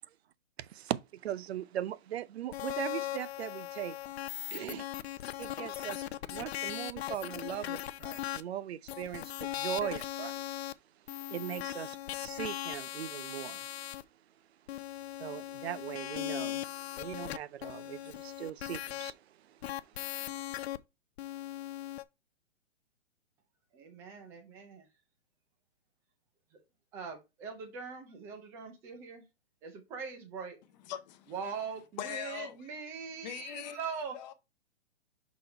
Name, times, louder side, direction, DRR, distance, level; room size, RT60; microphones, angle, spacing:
voice 1, 0.6-4.0 4.5-4.9 5.4-10.4 11.3-13.7 15.2-16.6 16.9-20.4, right 11 dB, 60° right, 0.6 m, -40 dB
sound 1, 2.5-8.4 8.9-10.7 11.1-14.0 14.7-19.1 19.6-20.8 21.2-22.0, left 13 dB, 60° left, 0.5 m, -39 dB
voice 2, 23.7-24.9 26.5-26.6 26.9-29.3 29.6-30.6 31.3-34.2, right 6 dB, 5° right, 0.4 m, -42 dB
voice 3, 30.9-31.3 32.0-32.6 33.2-33.8 34.1-34.3, left 11 dB, 35° left, 0.9 m, -40 dB
6.1 x 3.6 x 4.3 m
hypercardioid pair, 140°, 37 cm